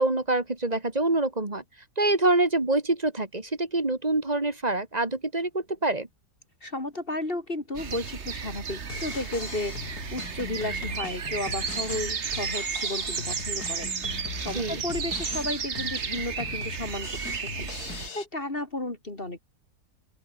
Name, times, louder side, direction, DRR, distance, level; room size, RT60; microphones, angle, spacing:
voice 1, 0.0-1.6 2.0-6.1 14.5-14.8, right 2 dB, 25° right, 2.7 m, -26 dB
voice 2, 6.6-19.4, left 2 dB, 30° left, 3.2 m, -34 dB
sound 1, 7.7-18.1, right 6 dB, 45° right, 1.6 m, -33 dB
Drum kit, 8.8-18.3, left 6 dB, 65° left, 2.3 m, -41 dB
open air
omnidirectional pair, 1.8 m